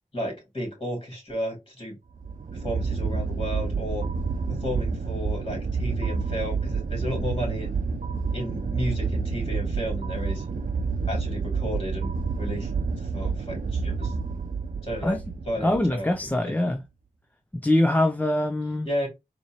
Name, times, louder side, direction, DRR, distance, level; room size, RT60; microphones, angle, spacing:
voice 1, 0.1-2.0 2.5-4.0 4.5-7.8 8.3-10.4 11.1-12.7 13.1-14.1 14.8-15.2 15.4-16.1 16.4-16.6 18.8-19.1, equal, 35° left, 2.6 m, -33 dB
sound 1, 2.1-16.3, right 4 dB, 65° right, 0.6 m, -29 dB
voice 2, 15.6-16.8 17.5-18.9, left 1 dB, 10° left, 0.6 m, -23 dB
4.3 x 2.8 x 2.9 m
cardioid pair, 40°, 15 cm